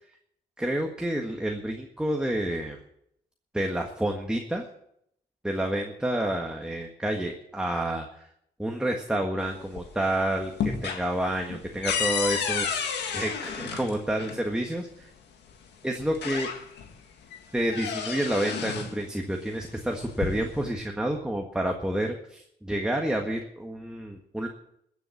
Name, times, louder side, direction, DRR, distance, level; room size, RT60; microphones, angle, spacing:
voice 1, 0.6-2.8 3.5-4.7 5.4-8.3 8.6-12.8 13.1-15.1 15.8-16.5 17.5-24.5, right 1 dB, 5° right, 2 dB, 1.6 m, -29 dB
sound 1, 9.4-10.1 10.4-14.4 15.5-15.6 16.0-16.9 17.3-19.0 19.9-20.7, left 6 dB, 90° left, 1.9 m, -31 dB
14.5 x 7.2 x 9.5 m, 0.75 s
cardioid pair, 85°, 17 cm